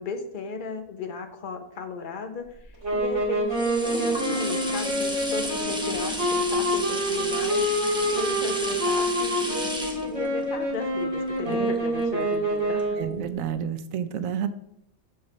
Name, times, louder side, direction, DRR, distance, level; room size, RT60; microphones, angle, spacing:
voice 1, 0.0-7.7 8.1-13.0, left 5 dB, 45° left, 7 dB, 0.7 m, -35 dB
sound 1, 2.5-12.3 12.8-12.9, equal, 5° right, 0.8 m, -34 dB
sound 2, 2.8-13.2, equal, 55° right, 2.2 m, -26 dB
voice 2, 13.0-14.5, right 8 dB, 75° right, 9 dB, 1.0 m, -30 dB
7.4 x 3.1 x 6.0 m, 0.75 s
omnidirectional pair, 1.4 m